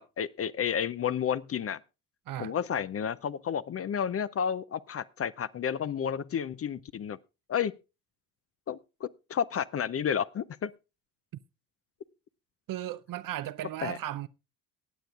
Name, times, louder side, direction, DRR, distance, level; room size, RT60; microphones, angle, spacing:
voice 1, 0.0-1.8 2.4-7.2 7.5-7.7 8.7-10.7 13.8-14.0, left 8 dB, 35° left, 0.5 m, -31 dB
voice 2, 2.3-2.6 12.7-14.3, right 13 dB, 50° right, 0.7 m, -36 dB
23.0 x 9.0 x 2.4 m
hypercardioid pair, 60°, 44 cm